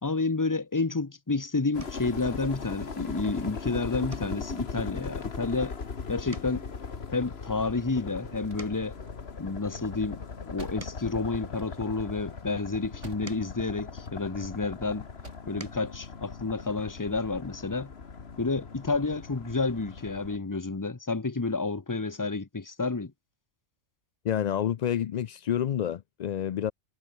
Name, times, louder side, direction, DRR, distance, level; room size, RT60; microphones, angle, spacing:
voice 1, 0.0-5.8 6.1-6.7 7.1-8.9 9.4-15.1 15.5-17.9 18.4-23.1, left 3 dB, 20° left, 0.8 m, -30 dB
sound 1, 1.7-20.4, left 5 dB, 55° left, 1.8 m, -39 dB
sound 2, 1.8-2.2 2.7-3.0 3.3-3.5 4.1-5.9 6.2-9.1 9.7-12.2 12.8-14.7 15.2-16.0 17.3-17.4 17.7-17.9, right 2 dB, 25° right, 2.5 m, -51 dB
sound 3, 8.3-13.6 13.9-14.7 15.0-15.6, right 2 dB, 70° right, 6.9 m, -51 dB
voice 2, 24.2-26.7, left 10 dB, 85° left, 0.3 m, -28 dB
omnidirectional pair, 1.3 m